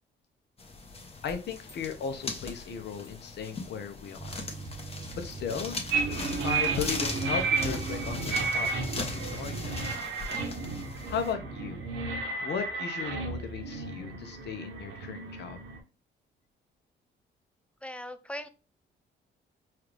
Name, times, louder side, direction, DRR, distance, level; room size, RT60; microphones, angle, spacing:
sound 1, 0.6-11.3, left 3 dB, 30° left, 1.0 m, -40 dB
voice 1, 1.2-4.4 5.1-5.8 6.4-9.7 11.1-11.8 12.4-15.6, left 7 dB, 60° left, 7 dB, 0.7 m, -36 dB
sound 2, 4.2-10.0, right 2 dB, 20° right, 1.0 m, -42 dB
sound 3, 5.9-15.8, right 4 dB, 75° right, 1.0 m, -32 dB
voice 2, 17.8-18.5, equal, 5° left, 10 dB, 0.5 m, -39 dB
4.3 x 2.5 x 3.3 m, 0.32 s
cardioid pair, 90°, 20 cm